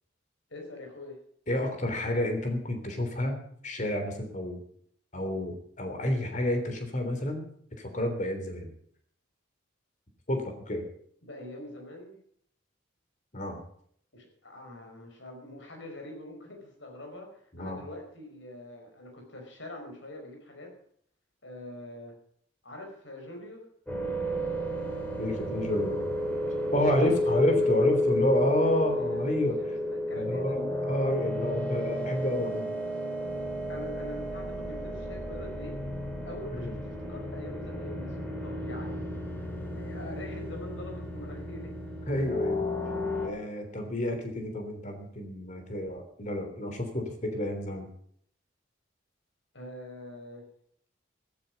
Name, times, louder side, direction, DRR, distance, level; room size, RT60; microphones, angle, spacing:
voice 1, 0.5-1.2 11.2-12.2 14.1-20.7 21.4-22.2 22.6-23.7 27.0-30.8 33.7-35.8 36.2-38.1 38.4-39.5 39.7-41.7 49.5-50.5, left 1 dB, 70° left, 3 dB, 5.1 m, -44 dB
voice 2, 1.5-3.4 3.6-4.6 5.1-7.5 7.8-8.7 10.3-10.8 13.3-13.6 17.5-17.8 25.2-26.0 26.7-29.6 30.1-32.7 36.5-36.7 42.1-42.7 43.2-47.9, left 1 dB, 40° left, 5 dB, 3.3 m, -30 dB
sound 1, 23.9-43.3, left 1 dB, 10° left, 3.3 m, -32 dB
14.5 x 14.0 x 5.4 m, 0.64 s
head